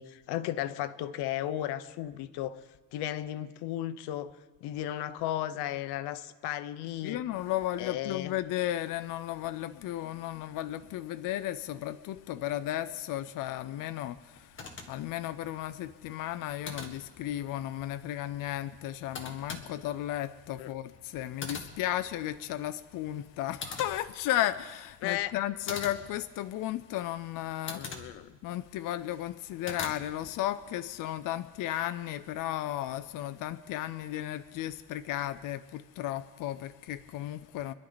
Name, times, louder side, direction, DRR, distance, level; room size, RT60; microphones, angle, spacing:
voice 1, 0.0-2.6 2.9-4.4 4.6-7.2 7.8-8.4 20.6-20.7 25.0-25.3 27.7-28.4, left 12 dB, 80° left, 0.9 m, -35 dB
voice 2, 7.0-14.2 14.9-27.8 28.4-37.7, left 13 dB, 55° left, 0.6 m, -34 dB
sound 1, 14.3-30.6, left 4 dB, 30° left, 1.7 m, -46 dB
26.0 x 11.5 x 4.0 m
cardioid pair, 155°, 39 cm